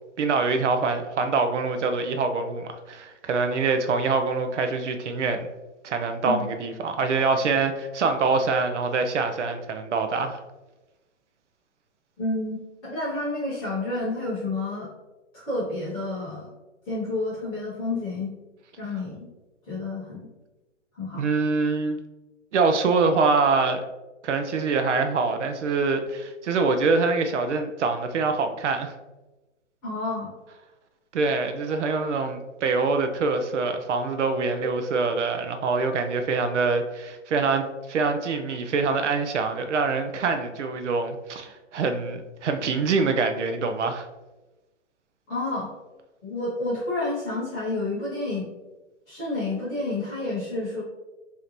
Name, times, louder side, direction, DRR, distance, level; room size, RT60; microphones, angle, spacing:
voice 1, 0.2-5.5 5.8-10.4 21.1-22.0 22.5-23.8 24.2-28.9 31.1-44.1, right 4 dB, 70° right, 7 dB, 0.6 m, -25 dB
voice 2, 12.2-14.9 15.3-16.4 16.9-18.3 18.8-19.3 19.7-20.3 20.9-21.2 29.8-30.3 34.6-34.7 45.3-45.7 46.2-48.5 49.1-50.8, left 2 dB, 10° left, -12 dB, 0.7 m, -30 dB
5.1 x 2.8 x 2.9 m, 1.1 s
hypercardioid pair, 175°, 37 cm